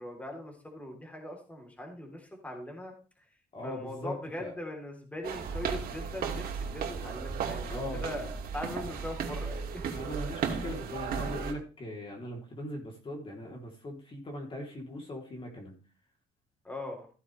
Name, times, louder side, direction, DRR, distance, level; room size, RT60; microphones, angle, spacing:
voice 1, 0.0-3.3 3.6-10.0 16.6-17.1, left 1 dB, 10° left, 1 dB, 3.5 m, -41 dB
voice 2, 3.5-4.5 7.7-8.3 9.9-15.8, left 1 dB, 30° left, 0 dB, 3.4 m, -40 dB
sound 1, 5.2-11.5, right 6 dB, 60° right, 2.5 m, -35 dB
15.5 x 9.2 x 3.3 m, 0.36 s
cardioid pair, 110°, 17 cm